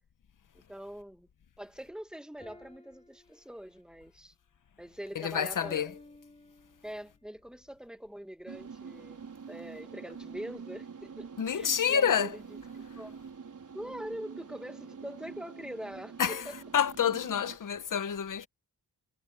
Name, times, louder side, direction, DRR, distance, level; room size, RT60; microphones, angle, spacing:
voice 1, 0.5-1.3 1.6-4.3 4.8-5.9 6.8-9.2 9.5-12.3 12.7-13.2 13.7-16.5, equal, ahead, 1.3 m, -43 dB
sound 1, 2.4-4.0 5.6-7.1, left 2 dB, 15° left, 7.0 m, -54 dB
voice 2, 5.1-6.0 11.4-12.4 16.2-18.5, left 8 dB, 60° left, 1.2 m, -28 dB
sound 2, 8.4-17.6, right 6 dB, 60° right, 4.5 m, -46 dB
wide cardioid pair, 100°, 35 cm